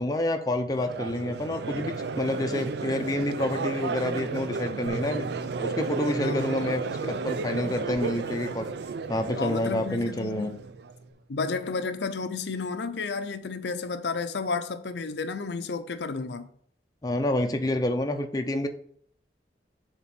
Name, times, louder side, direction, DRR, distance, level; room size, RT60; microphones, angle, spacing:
voice 1, 0.0-5.3 5.6-8.7 9.1-10.5 17.0-18.7, left 1 dB, 20° left, 0.5 m, -28 dB
Crowd, 0.8-10.9, right 4 dB, 65° right, 0.4 m, -33 dB
Bass guitar, 4.9-11.1, right 2 dB, 20° right, 0.7 m, -43 dB
voice 2, 6.2-6.7 9.3-10.6 11.3-16.5, left 4 dB, 65° left, 0.5 m, -32 dB
7.2 x 3.7 x 5.8 m
head